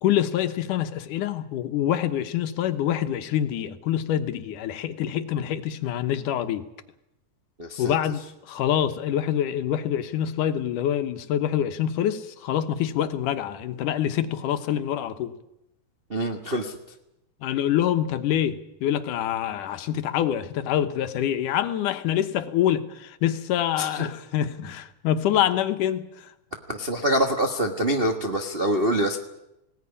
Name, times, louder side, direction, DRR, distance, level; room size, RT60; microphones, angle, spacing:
voice 1, 0.0-6.6 7.8-15.3 17.4-26.1, left 10 dB, 80° left, 9 dB, 2.7 m, -26 dB
voice 2, 7.6-7.9 16.1-16.8 23.8-24.1 26.7-29.2, right 1 dB, 55° right, 3 dB, 0.6 m, -25 dB
20.0 x 18.0 x 9.9 m, 0.88 s
omnidirectional pair, 3.6 m